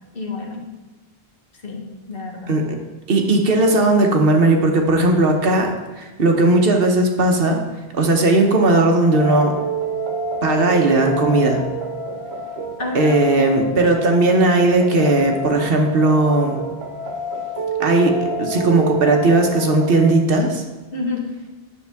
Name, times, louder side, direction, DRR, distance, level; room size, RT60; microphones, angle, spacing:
voice 1, 0.1-0.6 1.6-2.6 12.8-13.2 20.9-21.2, left 3 dB, 65° left, 0 dB, 1.6 m, -29 dB
voice 2, 3.1-7.6 7.9-9.5 10.4-11.6 12.9-16.6 17.8-20.6, right 2 dB, 65° right, 3 dB, 1.1 m, -17 dB
sound 1, 9.1-20.1, right 2 dB, 85° right, 1.2 m, -28 dB
9.9 x 6.6 x 3.5 m, 1.2 s
omnidirectional pair, 1.0 m